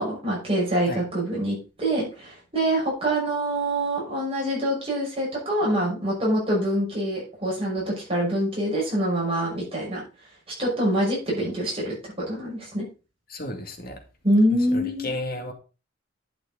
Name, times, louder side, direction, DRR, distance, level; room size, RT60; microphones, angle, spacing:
voice 1, 0.0-10.0 10.6-12.9 14.2-15.1, right 1 dB, 30° right, -4 dB, 5.9 m, -25 dB
voice 2, 13.3-14.0 14.7-15.5, left 1 dB, 50° left, 4 dB, 2.3 m, -33 dB
11.5 x 6.6 x 4.2 m, 0.33 s
head